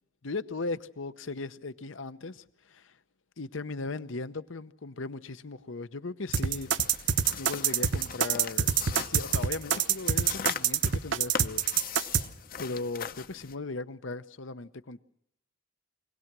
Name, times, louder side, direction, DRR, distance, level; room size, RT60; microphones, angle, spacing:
voice 1, 0.2-2.9 3.4-6.7 7.0-8.7 9.1-11.6 12.6-15.0, left 3 dB, 80° left, 0.9 m, -37 dB
sound 1, 6.3-13.5, left 7 dB, 45° left, 0.7 m, -40 dB
sound 2, 6.3-12.2, right 8 dB, 70° right, 0.9 m, -25 dB
24.0 x 17.5 x 6.1 m
head